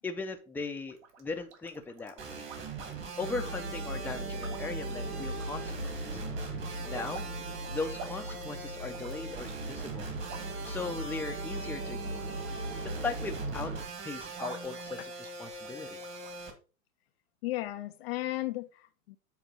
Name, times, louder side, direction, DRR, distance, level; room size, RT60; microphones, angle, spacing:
voice 1, 0.0-2.5 2.8-2.9 3.2-6.2 6.8-7.2 7.7-10.1 10.6-12.3 12.8-13.7 14.0-16.0, left 4 dB, 5° left, 0.7 m, -38 dB
sound 1, 0.9-3.2 4.0-5.9 6.2-16.3, right 5 dB, 55° right, 1.9 m, -50 dB
sound 2, 2.2-16.5, right 4 dB, 30° right, 2.0 m, -42 dB
sound 3, 3.2-13.8, right 1 dB, 90° right, 2.7 m, -39 dB
voice 2, 17.4-19.2, left 17 dB, 45° left, 0.6 m, -35 dB
8.3 x 3.7 x 5.2 m
hypercardioid pair, 110°, 42 cm